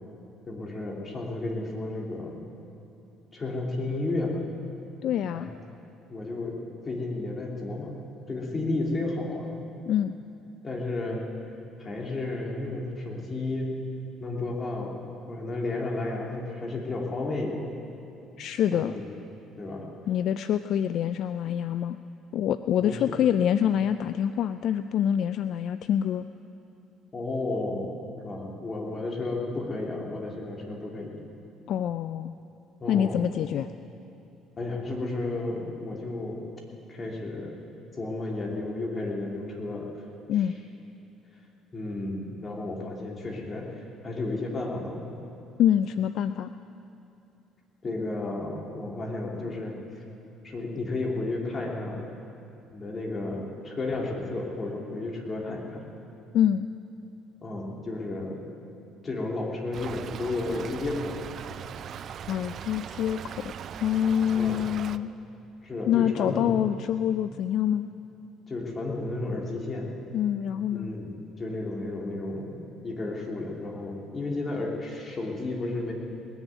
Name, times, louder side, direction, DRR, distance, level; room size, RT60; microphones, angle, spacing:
voice 1, 0.5-2.3 3.3-4.4 5.3-5.5 6.1-6.6 6.8-7.9 8.3-9.5 10.6-11.2 11.8-13.7 14.2-14.9 15.3-17.6 18.7-19.0 19.6-19.9 22.8-23.0 27.1-31.2 32.8-33.2 34.6-36.4 36.9-39.9 41.7-45.0 47.8-49.8 50.4-52.0 52.7-55.8 57.4-58.5 59.0-61.1 64.3-64.6 65.6-66.6 68.5-69.9 70.7-71.1 71.4-75.9, left 2 dB, 30° left, -1 dB, 3.0 m, -32 dB
voice 2, 5.0-5.5 9.9-10.1 18.4-18.9 20.1-22.0 22.3-26.3 31.7-32.3 32.9-33.7 40.3-40.6 45.6-46.5 56.3-56.7 62.3-63.5 63.8-65.1 65.9-67.9 70.1-70.9, left 10 dB, 65° left, 12 dB, 0.3 m, -26 dB
Stream / Trickle dribble, 59.7-65.0, right 8 dB, 55° right, 0.4 m, -39 dB
20.0 x 7.1 x 9.3 m, 2.7 s
supercardioid pair, 90°, 0 cm